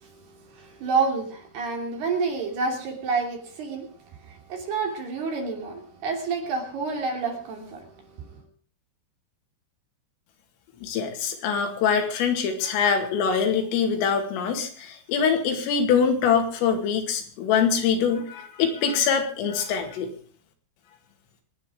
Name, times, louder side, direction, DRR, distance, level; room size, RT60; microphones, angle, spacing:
voice 1, 0.0-3.9 4.2-8.3, right 4 dB, 55° right, 2 dB, 4.6 m, -29 dB
voice 2, 10.8-20.1, left 6 dB, 85° left, 5 dB, 4.8 m, -24 dB
24.5 x 9.7 x 4.9 m, 0.44 s
omnidirectional pair, 5.8 m